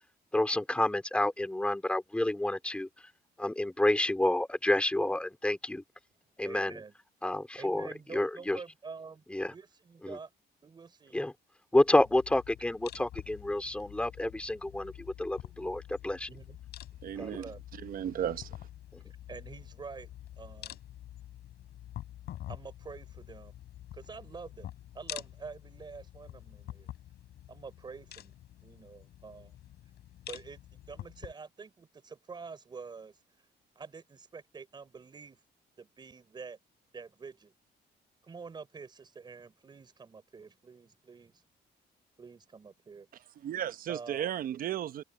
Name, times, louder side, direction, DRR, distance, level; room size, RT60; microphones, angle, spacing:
voice 1, 0.3-2.9 3.4-5.8 6.4-6.8 7.2-8.6 9.3-9.5 10.0-10.2 11.1-11.3 11.7-16.3 18.9-19.0, left 1 dB, 5° left, 3.4 m, -29 dB
voice 2, 6.4-6.9 7.6-10.3 10.6-11.2 16.3-16.6 17.2-17.6 19.3-20.8 22.5-23.5 23.9-24.7 24.9-26.9 27.5-28.3 28.6-29.5 30.3-30.6 30.9-33.2 33.7-35.4 35.8-36.6 36.9-37.5 38.2-41.4 42.2-43.1 43.9-44.4, right 5 dB, 25° right, 4.5 m, -47 dB
sound 1, 11.7-31.3, left 12 dB, 70° left, 4.9 m, -47 dB
voice 3, 17.0-17.4 17.8-18.5 43.4-45.0, right 10 dB, 55° right, 0.9 m, -34 dB
cardioid pair, 165°, 18 cm